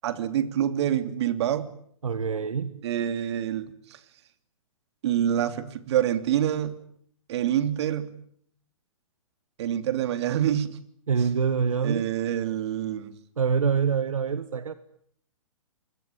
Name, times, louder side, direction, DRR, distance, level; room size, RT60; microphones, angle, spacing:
voice 1, 0.0-1.7 2.8-4.0 5.0-6.8 7.3-8.2 9.6-10.8 11.8-13.1, right 10 dB, 55° right, 12 dB, 3.1 m, -26 dB
voice 2, 2.0-2.8 11.1-12.1 13.4-14.7, right 6 dB, 80° right, 14 dB, 1.7 m, -25 dB
27.0 x 24.0 x 9.1 m, 0.65 s
hypercardioid pair, 125°, 17 cm